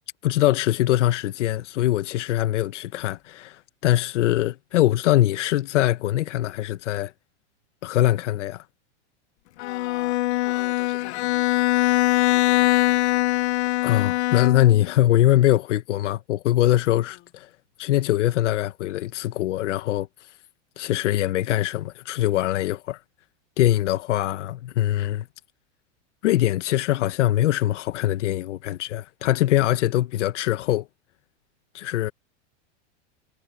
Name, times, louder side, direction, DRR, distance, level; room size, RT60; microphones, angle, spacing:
voice 1, 0.2-7.1 7.8-8.6 13.8-17.5 17.8-20.3 20.8-23.0 23.6-25.3 26.2-30.9 31.7-32.1, left 14 dB, 85° left, 1.2 m, -22 dB
Bowed string instrument, 9.6-14.9, left 17 dB, 70° left, 0.8 m, -22 dB
voice 2, 9.6-13.5 17.1-17.3, left 17 dB, 35° left, 4.0 m, -45 dB
supercardioid pair, 150°, 35 cm